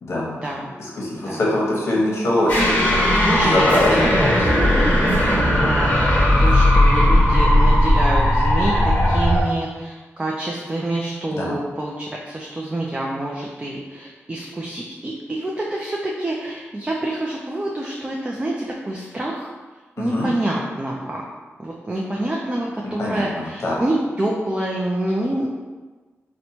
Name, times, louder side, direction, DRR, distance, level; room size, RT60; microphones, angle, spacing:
voice 1, 0.0-0.4 0.8-3.1 3.4-4.1 11.3-11.6 20.0-20.3 23.0-23.8, left 1 dB, 65° left, -4 dB, 0.9 m, -23 dB
sound 1, 2.5-9.4, left 1 dB, 30° left, 1.2 m, -17 dB
voice 2, 3.2-3.6 3.9-4.8 5.2-19.5 20.0-21.2 21.6-25.5, right 1 dB, 20° right, -3 dB, 0.4 m, -27 dB
4.3 x 2.1 x 2.8 m, 1.3 s
wide cardioid pair, 100°, 5 cm